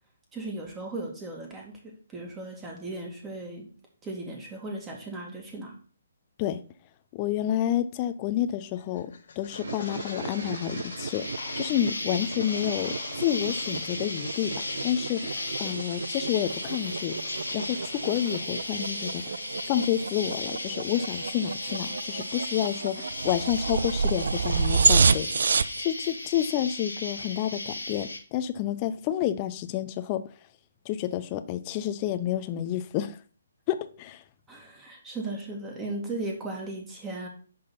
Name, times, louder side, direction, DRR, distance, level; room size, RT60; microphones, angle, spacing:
voice 1, 0.3-3.7 4.0-5.8 15.6-15.7 34.5-37.3, right 2 dB, 15° right, 2.2 m, -37 dB
voice 2, 7.1-9.1 9.4-11.2 11.6-14.5 14.8-17.1 17.5-25.5 25.8-30.2 30.8-33.2 33.7-34.2, left 11 dB, 25° left, 0.7 m, -29 dB
sound 1, 8.8-18.4, left 6 dB, 50° left, 1.0 m, -44 dB
sound 2, 9.5-25.8, right 5 dB, 60° right, 0.4 m, -30 dB
Insect, 11.1-28.2, left 2 dB, 80° left, 1.8 m, -36 dB
10.5 x 4.0 x 5.6 m
figure-of-eight pair, 135°, 0 cm